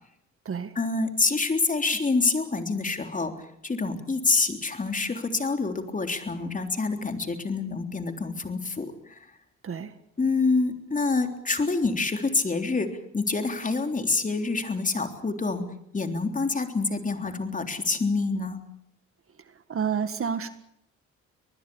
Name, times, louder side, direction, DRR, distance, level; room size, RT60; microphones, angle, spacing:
voice 1, 0.8-9.2 10.2-15.6 15.9-18.6, left 3 dB, 25° left, 6 dB, 3.6 m, -27 dB
voice 2, 19.7-20.5, right 6 dB, 45° right, 10 dB, 1.9 m, -29 dB
25.0 x 20.0 x 7.1 m, 0.75 s
cardioid pair, 90°, 30 cm